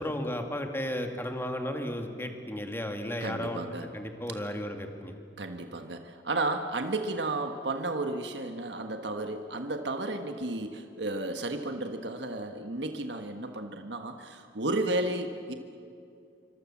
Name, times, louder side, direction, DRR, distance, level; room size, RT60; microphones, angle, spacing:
voice 1, 0.0-5.2, left 1 dB, 15° left, 4 dB, 2.2 m, -34 dB
voice 2, 3.2-3.9 5.4-15.5, right 2 dB, 75° right, 6 dB, 1.5 m, -33 dB
27.0 x 25.0 x 7.4 m, 2.5 s
head